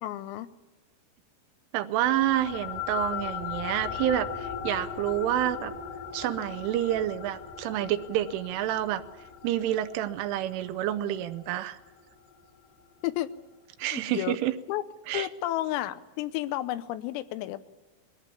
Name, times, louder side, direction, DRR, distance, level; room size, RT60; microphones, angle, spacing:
voice 1, 0.0-0.5 13.0-13.3 13.9-14.4 14.7-14.8 15.1-17.6, left 14 dB, 90° left, 12 dB, 3.6 m, -31 dB
voice 2, 1.7-5.7 6.1-9.0 9.4-11.8 13.8-14.5 15.1-15.3, right 12 dB, 80° right, 9 dB, 3.1 m, -28 dB
sound 1, 2.0-12.8, left 8 dB, 70° left, 2.4 m, -38 dB
22.0 x 15.0 x 8.5 m, 1.2 s
omnidirectional pair, 5.9 m